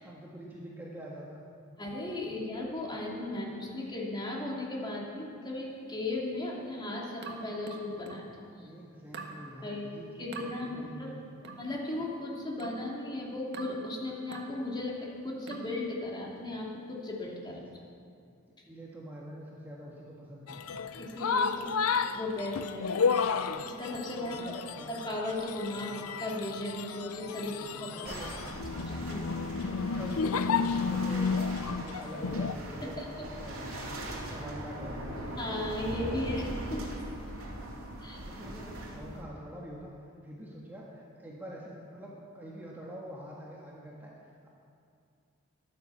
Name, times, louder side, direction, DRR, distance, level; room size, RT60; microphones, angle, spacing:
voice 1, 0.0-1.4 8.6-11.5 17.5-17.7 18.7-20.9 24.2-24.9 25.8-26.1 27.4-28.5 29.6-33.0 33.4-33.9 34.3-35.6 37.6-37.7 38.1-39.9 40.2-44.5, equal, 10° right, -5 dB, 1.6 m, -46 dB
voice 2, 1.8-8.7 9.6-11.1 11.6-15.0 15.2-17.6 21.0-22.9 23.4-24.6 24.9-27.9 28.8-29.3 32.8-33.0 35.4-36.9 38.0-38.2, left 2 dB, 20° left, -4 dB, 2.9 m, -36 dB
sound 1, 7.2-8.3 9.1-9.4 10.3-10.5 11.4-11.7 12.6-12.9 13.5-13.8 14.3-14.6 15.5-15.8, right 4 dB, 55° right, 1.6 m, -44 dB
sound 2, 20.5-32.5, left 5 dB, 85° left, 0.6 m, -32 dB
sound 3, 28.0-39.2, right 1 dB, 75° right, 2.9 m, -40 dB
14.5 x 12.0 x 7.0 m, 2.5 s
head